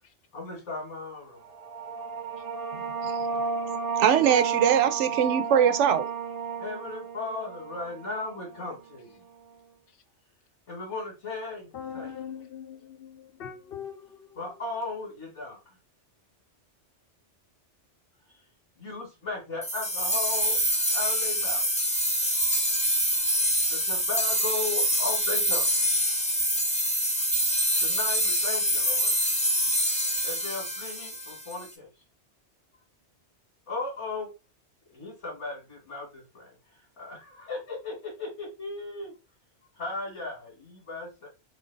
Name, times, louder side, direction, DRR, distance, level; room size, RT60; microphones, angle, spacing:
voice 1, 0.3-1.4 6.6-9.2 10.7-12.1 14.4-15.6 18.8-20.6 20.9-21.6 23.7-25.7 27.8-29.1 30.2-31.9 33.7-34.3 34.9-36.5 37.0-39.1 39.8-41.3, left 3 dB, 85° left, 1.9 m, -36 dB
sound 1, 1.4-8.7, right 6 dB, 55° right, 0.7 m, -32 dB
voice 2, 2.7-3.1 4.0-6.1, right 8 dB, 90° right, 0.9 m, -22 dB
voice 3, 11.7-14.0, left 8 dB, 65° left, 0.7 m, -40 dB
sound 2, 19.6-31.6, equal, 10° left, 0.4 m, -26 dB
3.3 x 2.5 x 3.8 m
omnidirectional pair, 1.2 m